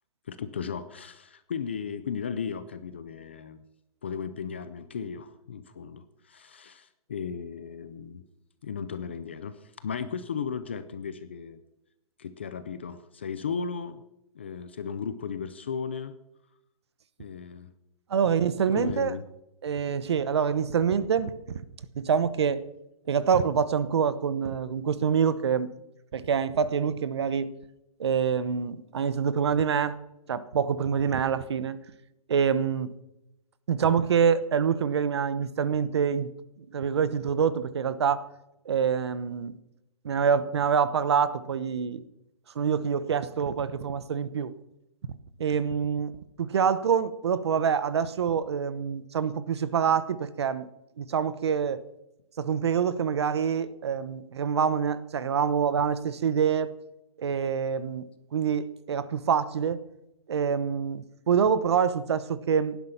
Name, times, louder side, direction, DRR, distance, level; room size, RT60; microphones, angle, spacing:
voice 1, 0.3-3.6 4.0-8.2 8.6-11.6 12.2-14.0 14.4-16.1 17.2-17.7 18.7-19.2, left 6 dB, 20° left, 12 dB, 0.4 m, -35 dB
voice 2, 18.1-19.2 19.6-21.3 21.9-22.6 23.1-25.7 26.1-27.6 28.0-30.0 30.3-31.8 32.3-32.9 33.7-36.3 36.6-38.2 38.6-39.5 40.0-42.0 42.5-44.5 45.4-46.1 46.4-50.7 51.0-51.8 52.4-56.7 57.2-58.0 58.3-59.8 60.3-62.8, right 7 dB, 45° right, 15 dB, 1.0 m, -26 dB
17.5 x 11.5 x 5.7 m, 0.88 s
hypercardioid pair, 180°, 19 cm